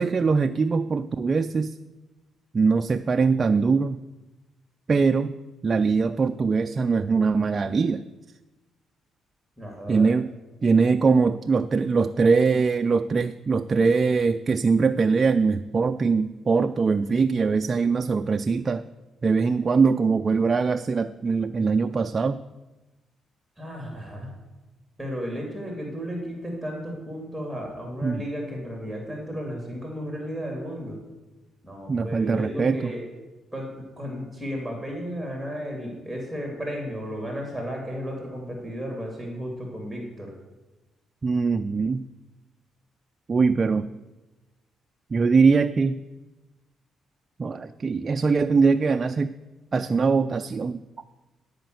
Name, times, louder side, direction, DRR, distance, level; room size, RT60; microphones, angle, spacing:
voice 1, 0.0-1.8 2.5-4.0 4.9-5.3 5.6-8.0 9.9-10.3 10.6-18.8 19.2-22.4 28.0-28.2 31.9-32.9 41.2-42.1 43.3-43.9 45.1-46.0 47.4-49.3 49.7-50.8, right 4 dB, 35° right, 8 dB, 0.3 m, -22 dB
voice 2, 9.6-10.1 23.6-24.3 25.0-31.0 31.6-33.0 33.5-40.3, equal, 5° left, 0 dB, 2.4 m, -34 dB
11.0 x 5.0 x 7.8 m, 1.1 s
cardioid pair, 90°, 0 cm